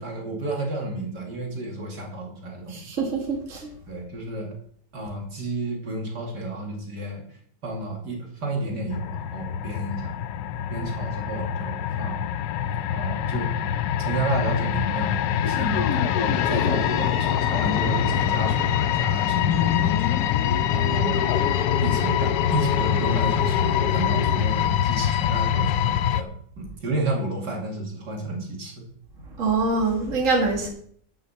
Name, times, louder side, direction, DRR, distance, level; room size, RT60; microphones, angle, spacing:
voice 1, 0.0-2.9 3.9-4.6 4.9-7.2 7.6-10.2 10.7-12.2 12.9-13.5 14.0-20.2 20.7-21.3 21.8-26.3 26.6-28.8, right 2 dB, 70° right, 0 dB, 3.1 m, -31 dB
voice 2, 2.7-3.7 29.4-30.7, right 3 dB, 45° right, -1 dB, 2.3 m, -24 dB
sound 1, 8.9-26.2, left 10 dB, 85° left, 1.3 m, -25 dB
sound 2, 14.9-24.5, left 9 dB, 65° left, 1.3 m, -30 dB
10.5 x 6.3 x 7.1 m, 0.62 s
omnidirectional pair, 1.9 m